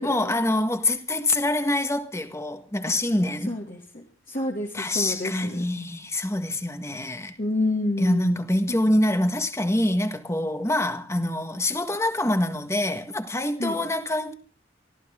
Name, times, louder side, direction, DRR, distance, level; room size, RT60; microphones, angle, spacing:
voice 1, 0.0-3.6 4.7-7.4 8.0-14.3, left 1 dB, 15° left, 1.7 m, -25 dB
voice 2, 3.5-5.6 7.4-8.4 13.6-13.8, left 2 dB, 45° left, 2.5 m, -29 dB
24.5 x 14.5 x 3.8 m
head